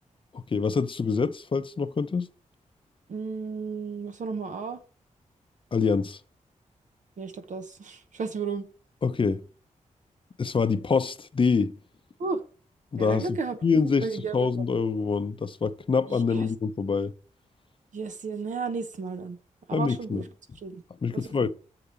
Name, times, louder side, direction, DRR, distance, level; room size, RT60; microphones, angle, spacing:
voice 1, 0.3-2.3 5.7-6.2 9.0-9.4 10.4-11.7 12.9-14.1 14.3-17.1 19.7-20.2 21.0-21.5, left 5 dB, 40° left, 0.6 m, -25 dB
voice 2, 3.1-4.8 7.2-8.7 12.2-12.4 13.0-13.6 14.0-14.6 16.1-16.5 17.9-19.4 19.7-20.3 20.6-20.8 21.1-21.5, right 4 dB, 70° right, 0.9 m, -33 dB
6.7 x 4.8 x 6.9 m
wide cardioid pair, 90°, 13 cm